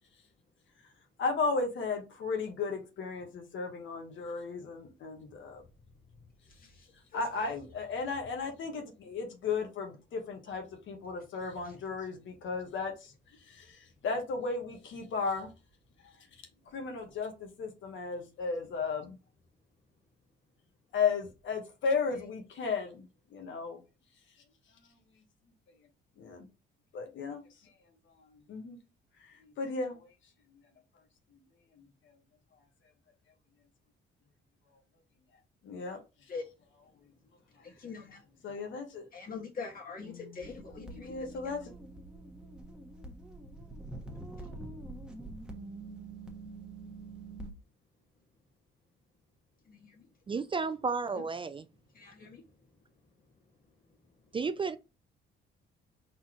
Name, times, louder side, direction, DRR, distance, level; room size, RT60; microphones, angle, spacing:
voice 1, 1.2-5.6 7.1-13.1 13.5-13.8 14.0-15.5 16.7-19.2 20.9-23.0 23.3-23.8 26.2-26.5 26.9-27.4 28.5-28.8 29.4-30.0 35.6-36.0 38.4-39.0 40.0-40.4 40.8-41.6, left 4 dB, 75° left, 1.4 m, -35 dB
voice 2, 6.6-6.9 7.1-7.5 11.6-11.8 36.3-36.5 37.6-38.2 39.1-41.3 49.7-50.1 51.9-52.4, left 4 dB, 45° left, 1.9 m, -44 dB
sound 1, 40.4-47.5, right 2 dB, 5° right, 1.3 m, -45 dB
voice 3, 50.3-51.7 54.3-54.8, right 4 dB, 25° right, 0.4 m, -32 dB
4.1 x 3.9 x 3.0 m
cardioid pair, 90°, 20 cm